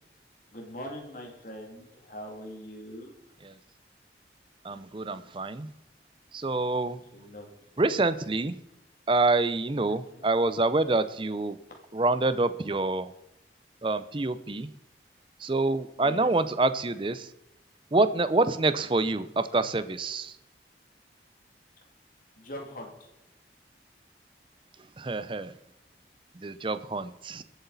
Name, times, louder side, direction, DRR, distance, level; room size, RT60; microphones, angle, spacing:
voice 1, 0.5-3.1 7.1-7.5 10.1-10.3 11.7-11.8 16.0-16.3 22.4-23.1, equal, 50° left, 1 dB, 2.5 m, -42 dB
voice 2, 4.6-5.7 6.3-7.0 7.8-8.6 9.1-11.6 11.9-13.1 13.8-14.7 15.4-17.3 17.9-20.4 25.0-25.5 26.4-27.4, right 2 dB, 30° right, 14 dB, 0.5 m, -26 dB
23.5 x 8.2 x 4.0 m, 0.87 s
head